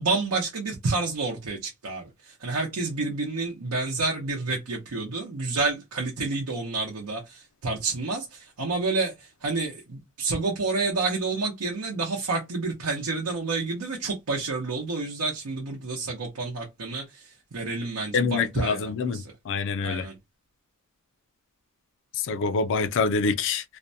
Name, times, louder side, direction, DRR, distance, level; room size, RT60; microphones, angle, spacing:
voice 1, 0.0-19.3 19.8-20.1, right 3 dB, 85° right, 0.7 m, -29 dB
voice 2, 18.1-20.0 22.3-23.6, left 4 dB, 60° left, 0.4 m, -26 dB
2.5 x 2.1 x 2.6 m
head